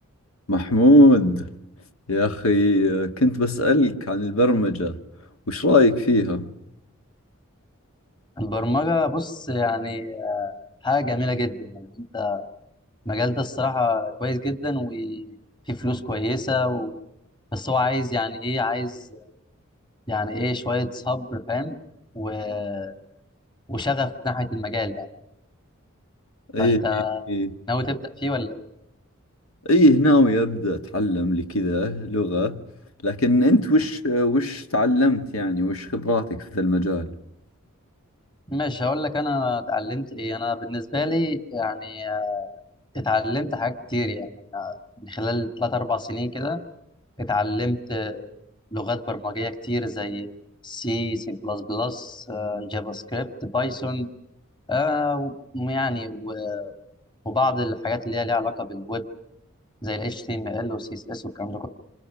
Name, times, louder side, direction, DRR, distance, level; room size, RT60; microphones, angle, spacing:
voice 1, 0.5-1.5 2.1-5.0 5.5-6.5 26.5-27.0 27.3-27.5 29.7-32.6 33.0-37.1, left 1 dB, 75° left, 1.7 m, -20 dB
voice 2, 8.4-10.5 10.8-12.5 13.1-15.3 15.7-16.9 17.5-19.2 20.1-21.8 22.1-22.9 23.7-25.1 26.6-27.2 27.7-28.6 38.5-42.5 42.9-46.6 47.2-48.3 48.7-50.4 50.6-54.1 54.7-56.7 57.3-59.0 59.8-61.7, left 2 dB, 20° left, 2.0 m, -27 dB
27.0 x 26.5 x 6.1 m
head